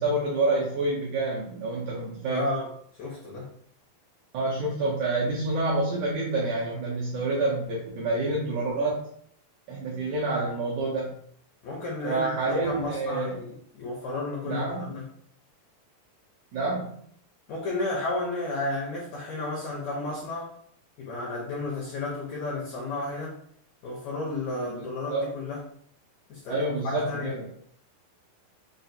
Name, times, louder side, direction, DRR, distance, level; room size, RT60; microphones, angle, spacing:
voice 1, 0.0-2.5 4.3-9.0 9.7-11.1 12.0-13.4 14.4-15.0 16.5-17.0 24.7-24.8 25.1-25.3 26.5-27.5, right 2 dB, 80° right, -5 dB, 1.7 m, -28 dB
voice 2, 2.3-2.7 3.0-3.5 11.6-15.1 17.5-20.5 21.0-23.4 23.8-25.6 26.3-27.4, left 2 dB, 75° left, -3 dB, 1.6 m, -32 dB
5.6 x 2.4 x 2.7 m, 0.64 s
omnidirectional pair, 4.2 m